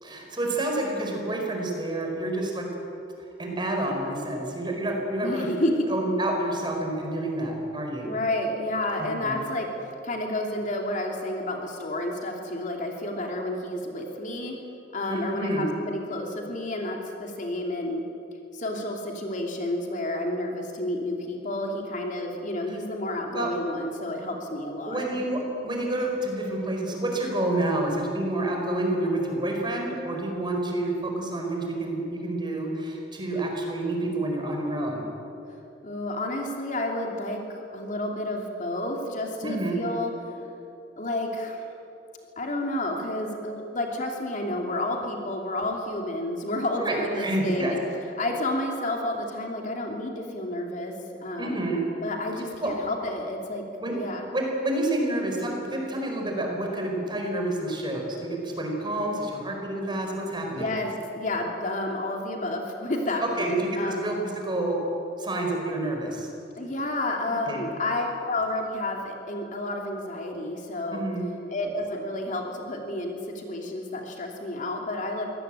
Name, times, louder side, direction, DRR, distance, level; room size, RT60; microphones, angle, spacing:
voice 1, 0.0-2.7 3.4-5.5 5.9-8.1 9.0-9.4 15.1-15.7 22.7-22.8 23.3-23.5 24.9-35.1 39.4-39.8 46.7-47.8 51.4-51.8 52.6-52.7 53.8-53.9 54.3-60.7 63.4-64.8 65.2-66.3 67.2-67.7 70.9-71.3, right 1 dB, 25° right, 1 dB, 4.8 m, -29 dB
voice 2, 5.2-5.7 8.0-9.7 10.0-14.6 14.9-18.0 18.5-25.1 35.8-40.1 41.0-41.6 42.4-47.8 48.2-50.9 51.2-51.7 52.0-53.6 53.9-54.3 60.5-64.1 66.6-71.0 71.5-75.3, left 1 dB, 45° left, 1 dB, 2.9 m, -30 dB
24.0 x 18.0 x 9.1 m, 2.8 s
head